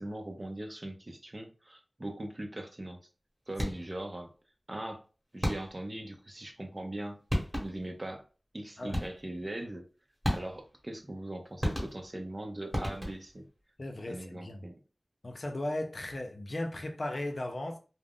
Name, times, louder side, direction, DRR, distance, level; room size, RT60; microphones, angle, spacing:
voice 1, 0.0-3.0 3.5-4.3 4.7-5.0 5.3-7.2 7.6-8.3 8.5-9.9 10.3-13.5 14.1-14.7, right 1 dB, 40° right, 0.6 m, -40 dB
sound 1, 3.5-4.0 5.4-5.9 7.0-7.1 7.3-7.9 8.9-9.4 10.2-10.8 11.6-12.3 12.7-13.4, equal, 5° right, 1.1 m, -34 dB
voice 2, 13.8-14.7 15.2-17.8, left 1 dB, 60° left, 0.5 m, -36 dB
2.4 x 2.0 x 3.5 m
wide cardioid pair, 55°, 0 cm